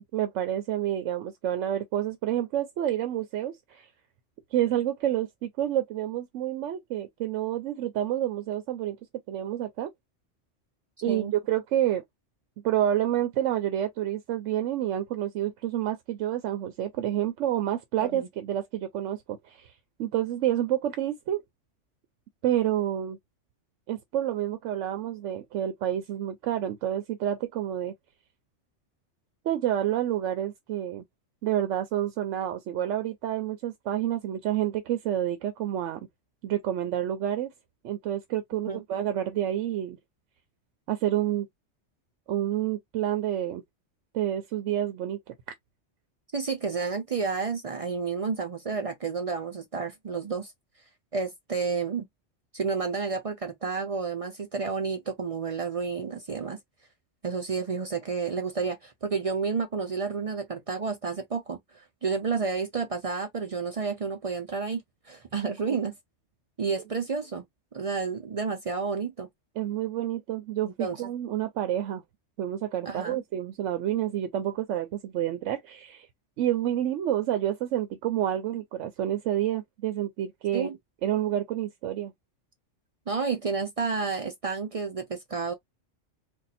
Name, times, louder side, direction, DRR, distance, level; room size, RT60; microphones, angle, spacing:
voice 1, 0.0-3.9 4.5-9.0 9.3-9.9 11.0-12.0 12.6-19.7 20.0-21.4 22.4-23.2 23.9-27.9 29.4-31.0 31.4-36.0 36.4-37.5 37.8-40.0 40.9-41.5 42.3-43.6 44.1-45.3 65.7-65.8 69.6-72.0 72.4-76.1 76.4-80.7 81.0-82.1, right 11 dB, 80° right, 0.9 m, -29 dB
voice 2, 46.3-50.5 51.1-52.1 52.5-56.6 57.2-64.8 65.1-65.9 66.6-67.4 67.7-69.3 70.6-71.0 72.9-73.2 80.5-80.8 83.1-85.5, right 5 dB, 55° right, 0.3 m, -30 dB
2.6 x 2.3 x 4.1 m
omnidirectional pair, 1.3 m